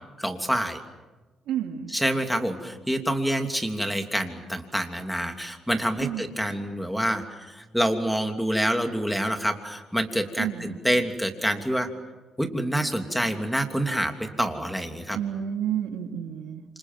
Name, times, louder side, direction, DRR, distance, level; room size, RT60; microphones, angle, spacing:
voice 1, 0.2-0.8 1.9-11.9 12.4-15.2, equal, ahead, 6 dB, 3.1 m, -27 dB
voice 2, 1.5-1.9 6.0-6.3 10.4-10.8 15.1-16.6, right 9 dB, 85° right, 4 dB, 2.7 m, -30 dB
28.0 x 27.0 x 7.6 m, 1.2 s
cardioid pair, 90°, 0 cm